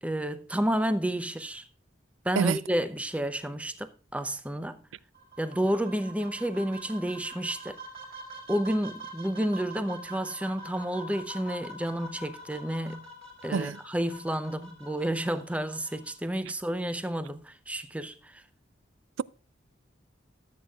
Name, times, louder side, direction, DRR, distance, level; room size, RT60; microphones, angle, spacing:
voice 1, 0.0-1.7 2.2-4.8 5.4-7.8 8.5-13.1 13.4-18.4, right 1 dB, 5° right, 0.6 m, -30 dB
voice 2, 2.4-2.6 13.5-13.8, right 5 dB, 85° right, 0.4 m, -25 dB
sound 1, 5.1-16.1, right 1 dB, 30° right, 3.9 m, -45 dB
14.5 x 8.1 x 2.4 m
head